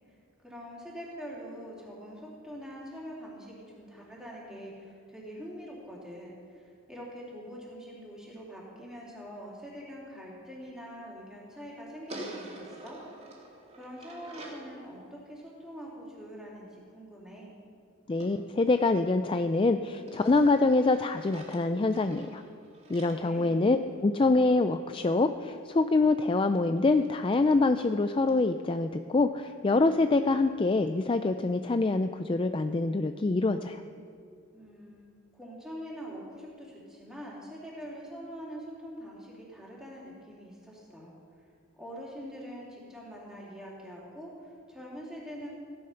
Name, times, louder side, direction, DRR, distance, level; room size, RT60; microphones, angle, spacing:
voice 1, 0.1-13.0 13.7-17.6 23.2-23.6 34.5-41.1 41.7-45.5, equal, 5° right, -5 dB, 3.3 m, -44 dB
sound 1, 12.1-14.7 18.2-19.6 20.1-24.2 26.1-26.2 26.5-26.6 26.9-27.0 27.3-27.4 27.8-27.9 28.3-28.4, right 1 dB, 30° right, 2.8 m, -47 dB
voice 2, 18.1-22.4 22.9-33.8, left 3 dB, 25° left, 9 dB, 0.4 m, -25 dB
16.5 x 11.5 x 5.7 m, 2.4 s
head